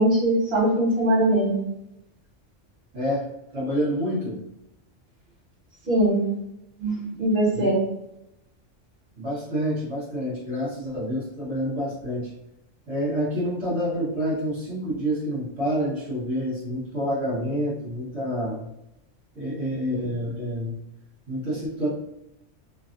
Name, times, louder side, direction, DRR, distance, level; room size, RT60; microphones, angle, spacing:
voice 1, 0.0-1.6 5.9-6.2 6.8-7.8, right 1 dB, 55° right, -5 dB, 1.3 m, -21 dB
voice 2, 2.9-3.3 3.5-4.4 7.5-7.7 9.2-12.3 12.9-18.7 19.3-20.8 21.3-21.9, equal, 80° right, -9 dB, 1.7 m, -28 dB
3.4 x 2.3 x 2.5 m, 0.85 s
omnidirectional pair, 1.3 m